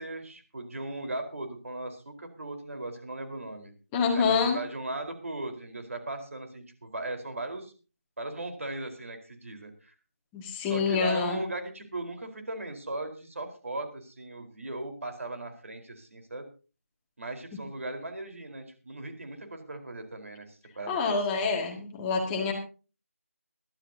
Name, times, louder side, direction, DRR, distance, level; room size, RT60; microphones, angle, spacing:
voice 1, 0.0-3.7 4.1-7.7 8.2-9.9 10.7-16.5 17.2-21.4, right 2 dB, 60° right, 6 dB, 4.2 m, -38 dB
voice 2, 3.9-4.6 10.3-11.4 20.9-22.5, left 5 dB, 10° left, 1 dB, 1.9 m, -27 dB
22.0 x 13.0 x 2.8 m, 0.34 s
figure-of-eight pair, 170°, 8 cm